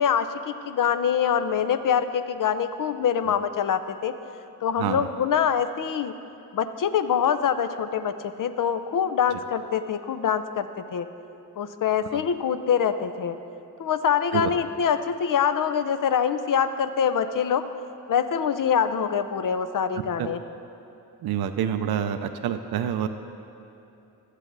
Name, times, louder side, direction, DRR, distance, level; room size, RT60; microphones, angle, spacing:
voice 1, 0.0-4.1 4.6-6.1 6.5-11.1 11.6-13.4 13.8-17.6 18.1-20.4, left 7 dB, 50° left, 11 dB, 0.6 m, -24 dB
voice 2, 21.2-23.1, right 9 dB, 60° right, 8 dB, 0.6 m, -27 dB
12.0 x 8.2 x 3.9 m, 2.8 s
supercardioid pair, 45°, 42 cm